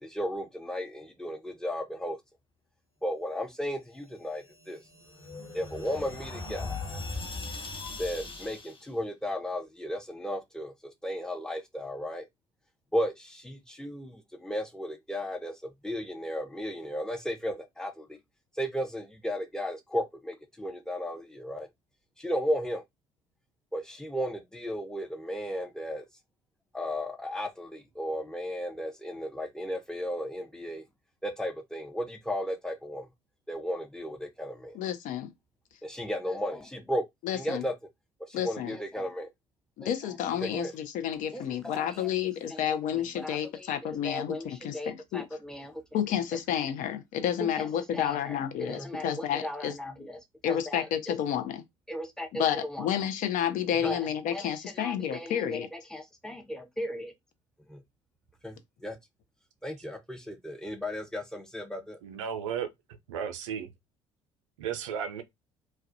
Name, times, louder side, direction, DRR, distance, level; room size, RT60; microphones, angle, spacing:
voice 1, 0.0-2.2 3.0-4.8 5.5-6.8 8.0-10.7 11.0-12.2 12.9-15.5 15.8-18.2 18.5-21.7 22.2-22.8 23.7-26.0 26.7-30.8 31.2-33.1 33.5-34.8 35.8-37.0 37.3-37.7 38.2-39.3 39.8-40.7 41.3-42.1 42.4-45.8 47.4-51.1 51.9-52.9 53.8-57.1 57.7-57.8 58.4-59.0 59.6-62.0, equal, 5° left, 0.7 m, -35 dB
sound 1, 4.4-8.9, left 3 dB, 30° left, 1.2 m, -39 dB
voice 2, 34.7-35.3 37.2-37.6 38.3-38.7 39.8-45.2 45.9-49.7 50.4-51.6 52.3-55.7, left 9 dB, 55° left, 0.5 m, -30 dB
voice 3, 62.0-62.7 63.1-63.7 64.6-65.2, right 8 dB, 80° right, 0.4 m, -34 dB
2.3 x 2.1 x 2.6 m
hypercardioid pair, 60°, 16 cm